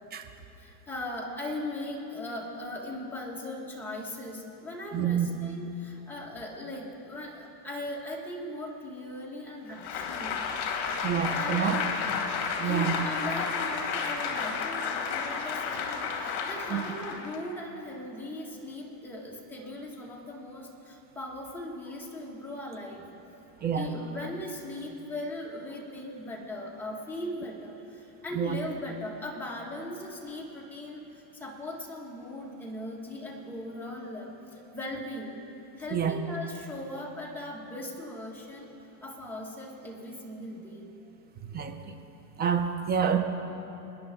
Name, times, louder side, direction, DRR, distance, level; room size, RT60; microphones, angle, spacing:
voice 1, 0.6-10.5 11.3-11.9 12.6-23.1 23.6-35.4 35.8-38.7 39.0-40.9, left 1 dB, 5° left, -3 dB, 2.0 m, -39 dB
voice 2, 4.9-5.3 11.0-11.8 12.6-12.9 16.7-16.8 23.6-23.9 28.3-28.6 35.9-36.2 41.5-41.7 42.4-43.2, right 8 dB, 20° right, 6 dB, 0.9 m, -27 dB
Applause, 9.7-17.5, left 5 dB, 50° left, 2.1 m, -32 dB
25.5 x 10.5 x 3.9 m, 3.0 s
supercardioid pair, 140°, 49 cm